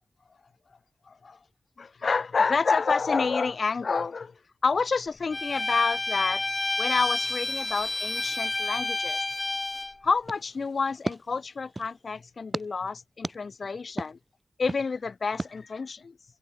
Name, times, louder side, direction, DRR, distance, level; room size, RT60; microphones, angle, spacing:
voice 1, 1.1-1.4 1.8-4.3 4.6-6.4 6.8-9.2 10.0-14.2 14.6-16.1, left 4 dB, 60° left, 0.4 m, -28 dB
Bowed string instrument, 5.3-9.9, left 2 dB, 30° left, 1.0 m, -29 dB
sound 1, 10.3-12.0 12.5-12.7 13.2-13.4 14.0-14.1 14.7-14.8 15.4-15.5, right 2 dB, 25° right, 0.4 m, -35 dB
wide cardioid pair, 130°, 0 cm